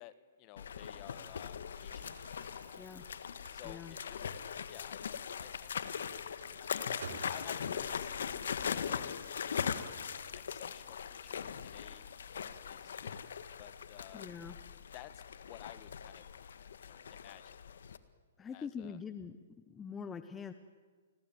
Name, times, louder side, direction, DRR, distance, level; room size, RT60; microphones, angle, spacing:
voice 1, 0.0-2.1 3.5-4.4 4.7-5.7 6.6-6.8 7.3-9.1 9.5-12.1 12.6-13.3 13.6-14.3 14.9-16.2 16.8-17.6 18.5-19.0, left 15 dB, 35° left, 14 dB, 1.7 m, -54 dB
sound 1, 0.6-18.0, left 7 dB, 75° left, 1.7 m, -40 dB
Crumpling crinkling, 1.8-7.9, right 5 dB, 80° right, 4.8 m, -54 dB
voice 2, 3.6-4.0 14.1-14.6 18.4-19.4 19.7-20.5, left 6 dB, 15° left, 10 dB, 1.1 m, -44 dB
30.0 x 20.5 x 9.3 m, 1.5 s
hypercardioid pair, 140°, 0 cm